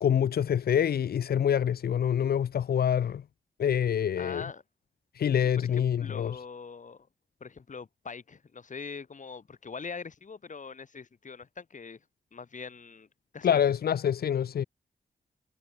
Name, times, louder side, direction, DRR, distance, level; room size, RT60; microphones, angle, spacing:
voice 1, 0.0-3.2 3.6-4.4 5.1-6.4 13.4-14.6, left 9 dB, 90° left, 1.3 m, -26 dB
voice 2, 4.2-4.6 5.6-7.1 7.4-12.0 12.3-13.1 13.3-13.6, left 5 dB, 55° left, 5.3 m, -42 dB
cardioid pair, 75°, 16 cm